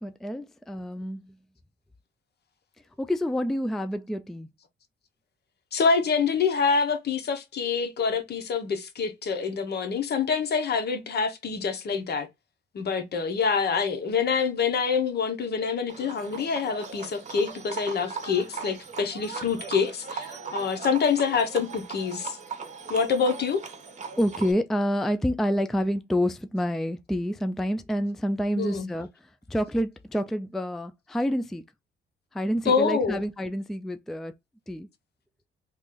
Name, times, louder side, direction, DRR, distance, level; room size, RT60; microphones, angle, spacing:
voice 1, 0.0-1.4 3.0-4.5 24.2-31.6 32.3-34.3 34.7-34.9, equal, ahead, 0.3 m, -28 dB
voice 2, 5.7-12.3 12.7-22.4 22.9-23.6 28.6-28.9 32.7-33.2, left 5 dB, 55° left, 1.0 m, -26 dB
Livestock farm animals working animals, 15.9-24.5, right 5 dB, 35° right, 1.1 m, -39 dB
3.0 x 2.5 x 3.7 m
cardioid pair, 90°, 20 cm